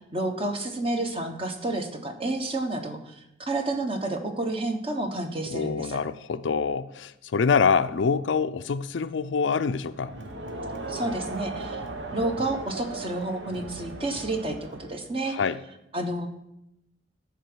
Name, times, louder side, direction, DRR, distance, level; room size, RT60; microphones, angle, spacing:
voice 1, 0.1-6.0 10.9-11.8 12.1-15.4 15.9-16.3, right 2 dB, 30° right, 5 dB, 1.2 m, -30 dB
voice 2, 5.5-10.1 15.2-15.6, left 5 dB, 70° left, 13 dB, 0.4 m, -25 dB
Crowd, 9.9-15.1, right 2 dB, 70° right, 1.1 m, -37 dB
13.0 x 4.9 x 6.1 m, 0.85 s
head